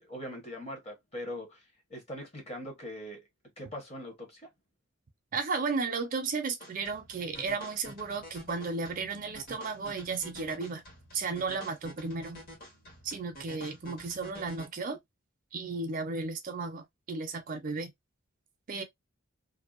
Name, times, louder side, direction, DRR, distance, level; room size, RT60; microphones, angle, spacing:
voice 1, 0.0-1.6 1.9-3.2 3.6-4.5, left 1 dB, 30° left, 1.0 m, -41 dB
voice 2, 5.3-10.8 11.1-12.4 13.0-15.0 15.5-17.9 18.7-18.8, right 4 dB, 40° right, 0.4 m, -34 dB
sound 1, 6.6-14.7, equal, 45° left, 1.3 m, -49 dB
2.6 x 2.1 x 2.3 m
head